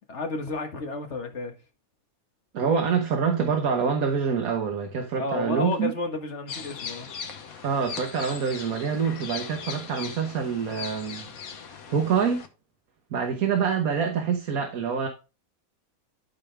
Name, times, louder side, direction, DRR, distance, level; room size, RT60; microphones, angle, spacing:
voice 1, 0.1-1.5 5.2-7.1, left 3 dB, 55° left, 1.7 m, -31 dB
voice 2, 2.5-5.9 7.6-11.3 11.9-12.4 13.1-15.1, right 6 dB, 80° right, 1.7 m, -26 dB
sound 1, 6.5-12.5, left 6 dB, 80° left, 1.5 m, -39 dB
12.0 x 5.1 x 3.3 m
omnidirectional pair, 1.5 m